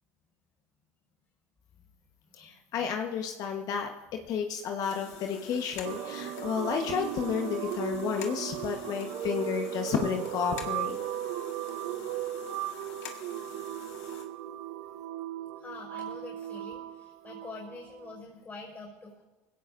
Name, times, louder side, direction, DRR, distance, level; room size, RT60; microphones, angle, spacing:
voice 1, 2.4-3.9 4.3-11.0, left 7 dB, 55° left, 3 dB, 1.2 m, -31 dB
sound 1, 4.8-14.2, left 9 dB, 80° left, 1.7 m, -47 dB
sound 2, 5.8-18.2, right 12 dB, 65° right, 0.7 m, -37 dB
voice 2, 15.6-19.1, left 3 dB, 25° left, -3 dB, 5.1 m, -45 dB
21.0 x 16.5 x 2.6 m, 1.1 s
hypercardioid pair, 85°, 7 cm